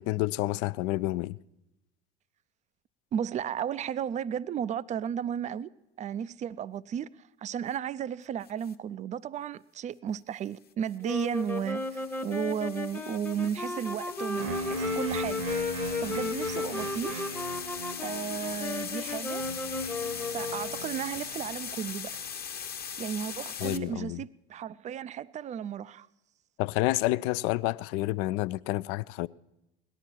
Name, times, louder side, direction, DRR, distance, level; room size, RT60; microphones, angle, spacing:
voice 1, 0.0-1.4 23.6-24.2 26.6-29.3, left 18 dB, 50° left, 0.4 m, -29 dB
voice 2, 3.1-5.7 6.0-15.4 16.0-17.2 18.0-19.5 20.2-22.2 23.0-26.1, right 9 dB, 25° right, 0.4 m, -34 dB
sound 1, 8.4-8.7 10.9-23.8, left 7 dB, 30° left, 0.9 m, -40 dB
sound 2, 11.0-21.1, left 3 dB, 5° left, 0.9 m, -35 dB
sound 3, 14.4-22.2, right 1 dB, 65° right, 1.1 m, -39 dB
18.0 x 12.0 x 4.5 m
figure-of-eight pair, 65°, 30 cm